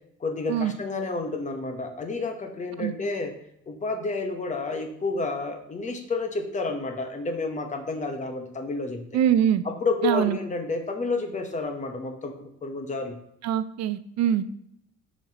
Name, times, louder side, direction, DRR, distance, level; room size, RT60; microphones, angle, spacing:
voice 1, 0.2-3.3 3.7-9.1 9.6-13.2, left 3 dB, 25° left, 5 dB, 0.9 m, -30 dB
voice 2, 9.1-9.6 10.0-10.4 13.4-14.4, right 10 dB, 65° right, 13 dB, 0.5 m, -23 dB
7.2 x 5.2 x 2.9 m, 0.75 s
cardioid pair, 130°, 29 cm